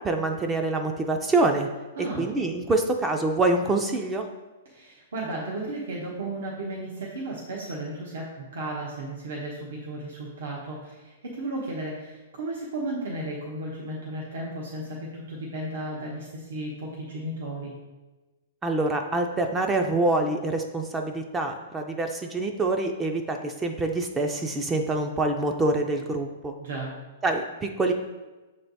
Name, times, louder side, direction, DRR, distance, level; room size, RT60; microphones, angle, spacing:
voice 1, 0.0-1.7 2.1-4.3 18.6-26.5 27.2-27.9, right 2 dB, 10° right, 4 dB, 0.3 m, -26 dB
voice 2, 2.0-2.3 4.6-17.7 26.6-26.9, right 1 dB, 85° right, -3 dB, 1.1 m, -34 dB
6.9 x 3.4 x 4.0 m, 1.2 s
hypercardioid pair, 165°, 0 cm